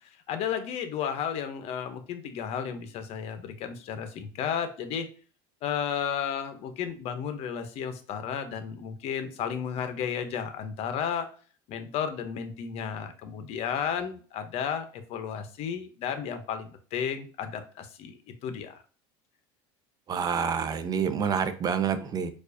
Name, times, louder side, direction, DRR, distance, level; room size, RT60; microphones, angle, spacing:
voice 1, 0.3-5.1 5.6-11.3 11.7-18.2 18.4-18.8, left 8 dB, 55° left, 8 dB, 0.7 m, -33 dB
voice 2, 20.1-22.3, right 7 dB, 30° right, 10 dB, 0.5 m, -27 dB
4.5 x 2.4 x 2.6 m, 0.41 s
supercardioid pair, 110°, 13 cm